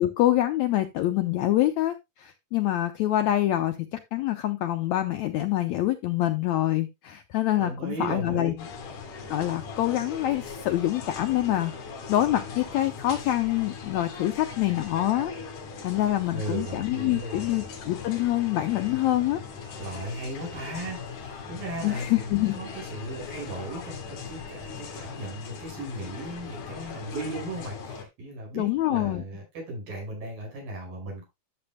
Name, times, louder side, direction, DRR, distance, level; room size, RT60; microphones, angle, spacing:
voice 1, 0.0-3.7 4.1-8.5 9.3-11.7 12.1-15.3 15.8-19.4 21.8-22.6 28.5-29.2, left 14 dB, 85° left, 8 dB, 1.6 m, -25 dB
voice 2, 7.6-8.7 16.3-17.5 19.8-31.2, right 1 dB, 85° right, -1 dB, 6.9 m, -36 dB
sound 1, 8.6-28.0, left 5 dB, 65° left, 3.5 m, -39 dB
13.0 x 6.9 x 2.2 m, 0.21 s
omnidirectional pair, 3.9 m